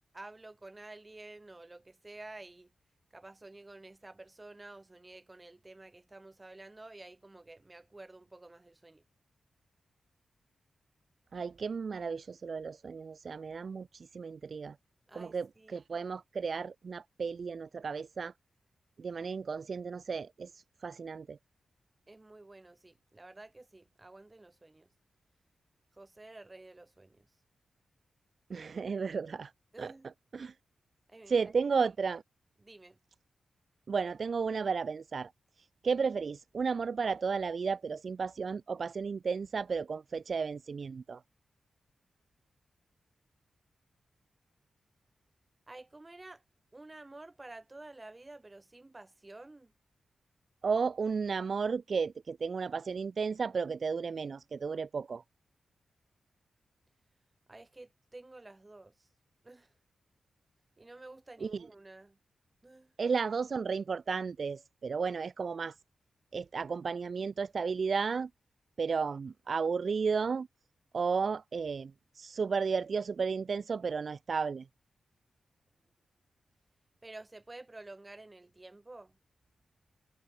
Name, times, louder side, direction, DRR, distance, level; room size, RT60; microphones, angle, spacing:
voice 1, 0.1-2.7 3.1-9.0 15.1-15.8 22.1-24.9 25.9-27.3 29.7-30.1 31.1-31.5 32.6-33.0 45.7-46.4 46.7-49.7 57.5-59.1 59.4-59.7 60.8-62.2 62.6-62.9 77.0-79.2, right 2 dB, 25° right, 7.5 m, -51 dB
voice 2, 11.3-14.7 15.1-18.3 19.0-21.4 28.5-29.5 29.8-29.9 30.3-30.5 31.3-32.2 33.9-35.3 35.8-41.2 50.6-55.2 61.4-61.6 63.0-65.7 66.3-68.3 68.8-70.5 70.9-74.6, right 5 dB, 55° right, 0.8 m, -33 dB
cardioid pair, 80°, 0 cm